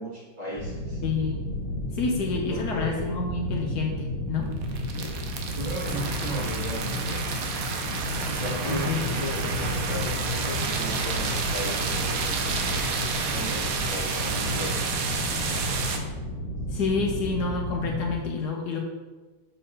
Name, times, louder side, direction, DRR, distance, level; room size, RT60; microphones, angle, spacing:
voice 1, 0.0-1.0 2.5-3.1 4.9-5.2 5.5-7.2 8.2-12.9 13.3-15.3, right 1 dB, 25° right, -8 dB, 2.2 m, -36 dB
sound 1, 0.6-18.2, left 1 dB, 85° left, 2.1 m, -32 dB
voice 2, 1.0-1.4 1.9-4.5 8.6-9.0 16.7-18.8, left 4 dB, 65° left, 0 dB, 1.3 m, -28 dB
sound 2, 4.5-16.0, right 5 dB, 65° right, 1.0 m, -30 dB
6.8 x 6.5 x 2.9 m, 1.3 s
omnidirectional pair, 2.0 m